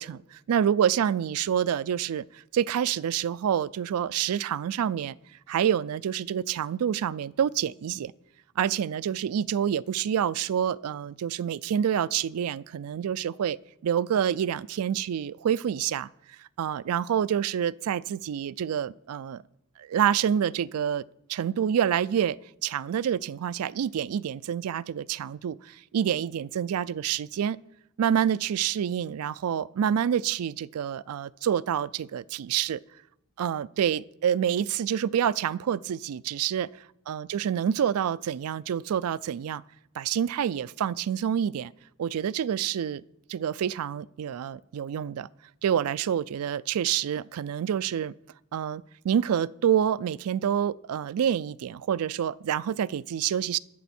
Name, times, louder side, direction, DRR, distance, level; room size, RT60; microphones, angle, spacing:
voice 1, 0.5-5.2 5.5-8.1 8.6-13.6 13.8-16.1 16.6-19.4 19.8-21.0 21.3-27.6 28.0-32.8 33.4-36.7 37.1-39.6 40.0-41.7 42.0-43.0 43.3-45.3 45.6-48.1 48.5-53.6, right 9 dB, 85° right, 0.3 m, -27 dB
20.0 x 6.9 x 4.3 m
head